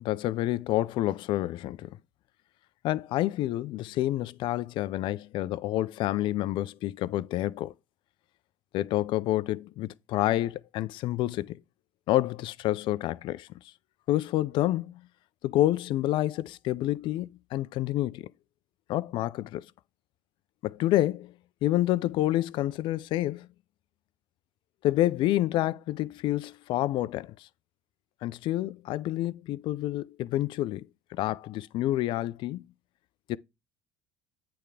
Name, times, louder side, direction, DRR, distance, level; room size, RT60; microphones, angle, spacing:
voice 1, 0.0-2.0 2.8-7.7 8.7-11.6 12.1-13.5 14.1-15.0 15.4-18.3 18.9-19.6 20.6-21.3 21.6-23.5 24.8-27.5 28.2-32.7 33.3-33.4, left 15 dB, 65° left, 0.4 m, -28 dB
8.7 x 3.4 x 4.8 m
supercardioid pair, 90°, 9 cm